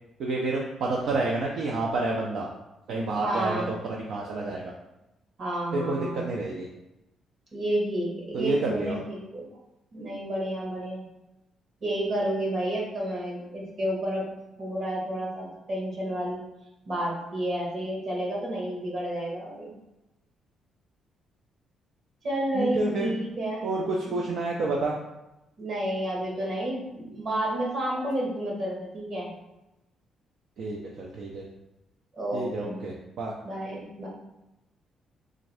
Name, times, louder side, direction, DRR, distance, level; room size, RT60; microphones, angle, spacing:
voice 1, 0.2-2.5 2.9-4.7 5.7-6.7 8.3-9.0 22.5-23.1 23.6-25.0 30.6-31.4 32.3-33.3, right 2 dB, 70° right, -2 dB, 0.5 m, -29 dB
voice 2, 3.2-3.7 5.4-6.2 7.5-9.4 9.9-11.0 11.8-14.3 14.6-16.4 16.8-19.7 22.2-23.7 24.1-24.2 25.6-29.3 32.1-32.8 33.4-34.1, right 1 dB, 50° right, -2 dB, 1.4 m, -30 dB
3.6 x 2.6 x 3.3 m, 0.95 s
cardioid pair, 90°, 0 cm